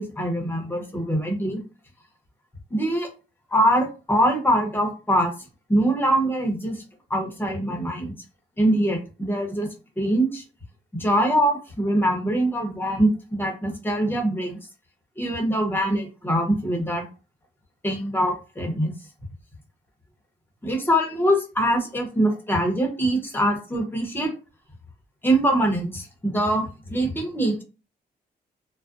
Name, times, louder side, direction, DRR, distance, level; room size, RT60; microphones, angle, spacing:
voice 1, 0.0-1.6 2.7-3.1 3.5-5.3 5.7-6.8 7.1-8.1 8.6-9.7 10.0-10.4 11.0-14.6 15.2-17.1 17.8-18.9 20.6-24.3 25.2-27.6, right 1 dB, 10° left, 2 dB, 0.8 m, -23 dB
2.4 x 2.1 x 2.4 m, 0.32 s
cardioid pair, 110°, 18 cm